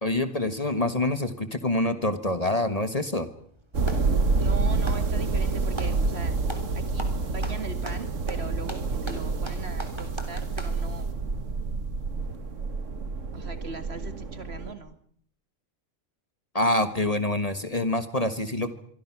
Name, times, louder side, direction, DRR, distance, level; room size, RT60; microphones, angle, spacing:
voice 1, 0.0-3.3 16.5-18.7, left 1 dB, 30° left, 10 dB, 1.5 m, -26 dB
Clapping, 3.3-4.1 4.7-6.0 6.5-6.7 7.0-10.8, right 1 dB, 20° right, 3.4 m, -39 dB
sound 1, 3.7-14.7, right 3 dB, 75° right, 1.9 m, -28 dB
voice 2, 4.4-6.4 6.7-11.1 13.3-15.0, right 4 dB, 55° right, 10 dB, 2.3 m, -40 dB
27.0 x 23.5 x 6.1 m, 0.62 s
omnidirectional pair, 1.3 m